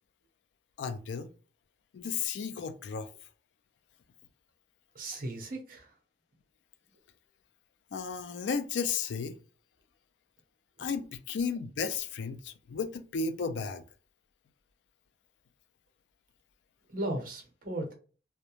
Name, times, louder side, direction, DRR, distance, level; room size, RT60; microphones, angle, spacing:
voice 1, 0.8-1.3 1.9-3.1 7.9-9.4 10.8-13.8, left 5 dB, 85° left, 0.4 m, -34 dB
voice 2, 4.9-5.9 16.9-17.9, right 1 dB, 55° right, 0.8 m, -36 dB
2.3 x 2.1 x 2.9 m
head